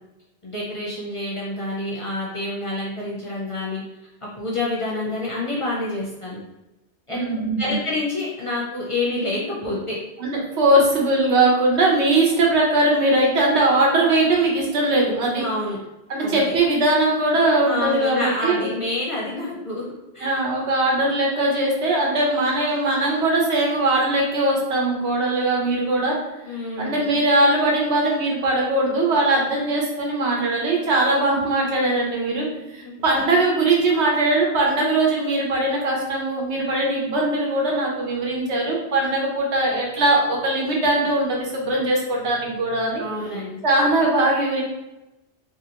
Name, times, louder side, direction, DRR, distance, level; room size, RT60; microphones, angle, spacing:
voice 1, 0.4-3.8 4.4-6.4 7.1-7.3 7.6-10.0 15.4-15.8 16.2-16.6 17.6-19.8 20.1-20.4 26.4-27.2 32.8-32.9 43.0-43.6, left 2 dB, 40° left, -6 dB, 0.5 m, -28 dB
voice 2, 7.1-7.8 10.2-15.4 16.1-18.7 20.2-26.1 26.8-32.5 32.7-43.0 43.6-44.6, right 2 dB, 90° right, -2 dB, 1.1 m, -20 dB
2.8 x 2.4 x 2.8 m, 0.98 s
omnidirectional pair, 1.1 m